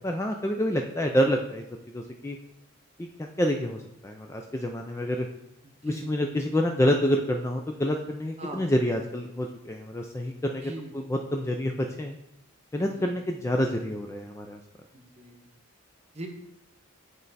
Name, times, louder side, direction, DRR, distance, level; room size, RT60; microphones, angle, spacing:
voice 1, 0.0-1.6 1.9-2.4 3.0-5.3 5.8-12.2 12.7-14.6, equal, 15° left, 3 dB, 0.3 m, -28 dB
voice 2, 10.6-10.9 13.0-13.1 14.9-15.4 16.1-16.3, right 1 dB, 30° right, 3 dB, 0.9 m, -40 dB
8.8 x 3.2 x 4.0 m, 0.84 s
head